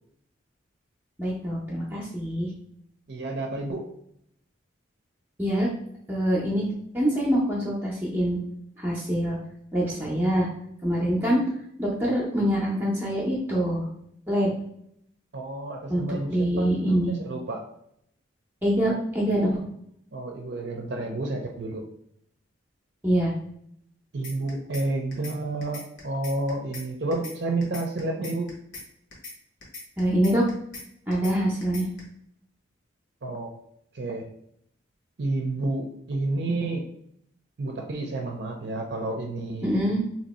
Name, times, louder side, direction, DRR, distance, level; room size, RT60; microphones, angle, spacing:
voice 1, 1.2-2.5 5.4-5.7 6.1-6.6 6.9-8.4 8.8-9.4 9.7-10.5 10.8-11.4 11.8-13.9 14.3-14.5 15.9-16.0 16.3-17.1 18.6-19.5 23.0-23.3 30.0-30.5 31.1-31.9 39.6-40.0, equal, 10° right, -4 dB, 0.6 m, -24 dB
voice 2, 3.1-3.9 15.3-17.6 20.1-21.8 24.1-28.5 33.2-33.5 33.9-34.2 35.2-36.8 37.6-39.8, right 2 dB, 55° right, 1 dB, 0.5 m, -30 dB
sound 1, 24.2-24.8 25.1-25.3 25.6-26.8 27.1-27.3 27.6-28.8 29.1-29.3 29.6-30.8 31.1-31.3 31.6-32.0, left 2 dB, 65° left, 1.3 m, -40 dB
2.9 x 2.6 x 4.1 m, 0.71 s
head